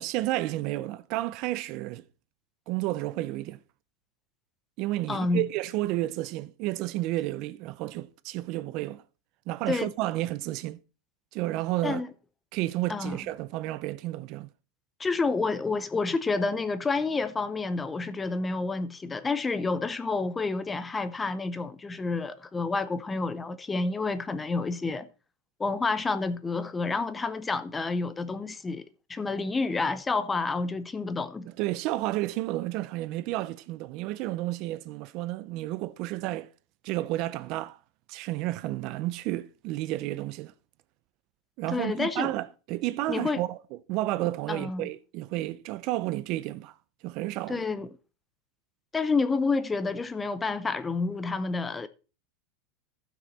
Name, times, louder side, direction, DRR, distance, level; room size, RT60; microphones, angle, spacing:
voice 1, 0.0-2.1 2.7-3.6 4.8-9.0 9.5-10.8 11.3-12.0 12.5-14.5 31.5-36.5 36.8-37.8 38.1-40.5 41.6-46.7 47.0-47.7, right 16 dB, 45° right, 0.5 m, -31 dB
voice 2, 5.1-5.4 9.7-9.9 11.8-12.1 12.9-13.2 15.0-25.1 25.6-28.8 29.1-31.5 41.7-42.3 43.1-43.4 44.5-44.9 47.5-47.9 48.9-51.9, left 3 dB, 10° left, 0.6 m, -29 dB
15.0 x 6.1 x 4.1 m
supercardioid pair, 155°, 0 cm